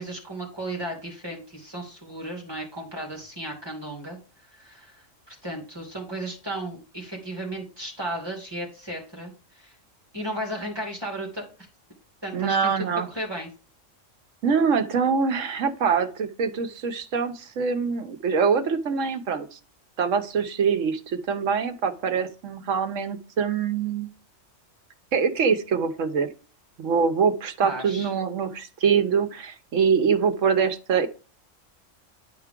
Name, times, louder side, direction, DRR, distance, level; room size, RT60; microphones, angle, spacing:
voice 1, 0.0-9.7 10.1-11.4 12.2-12.7 13.1-13.5 27.6-28.1, right 1 dB, 20° right, 0 dB, 2.5 m, -35 dB
voice 2, 12.3-13.1 14.4-19.6 20.0-24.1 25.1-26.3 26.8-31.1, right 6 dB, 80° right, 8 dB, 1.2 m, -24 dB
10.5 x 4.6 x 3.7 m, 0.36 s
omnidirectional pair, 1.3 m